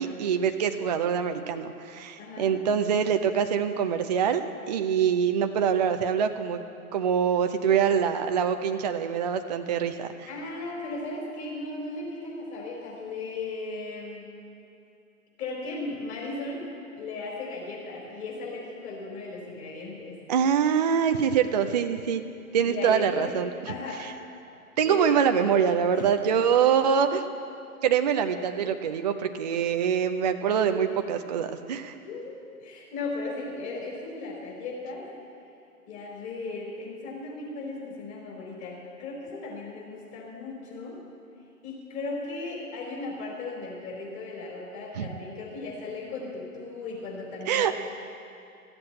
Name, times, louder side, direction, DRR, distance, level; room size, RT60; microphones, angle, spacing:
voice 1, 0.0-4.4 4.7-6.6 6.9-10.3 20.3-22.2 22.5-23.7 24.8-27.2 27.8-31.9 44.9-45.1 47.5-47.8, right 7 dB, 30° right, 7 dB, 0.4 m, -24 dB
voice 2, 2.2-2.5 10.3-14.2 15.4-16.6 16.9-20.2 22.6-23.3 23.7-24.0 24.8-25.2 25.9-26.1 32.0-35.1 35.9-41.0 41.6-47.8, left 3 dB, 30° left, -2 dB, 4.2 m, -36 dB
14.0 x 7.8 x 8.7 m, 2.6 s
figure-of-eight pair, 120°, 44 cm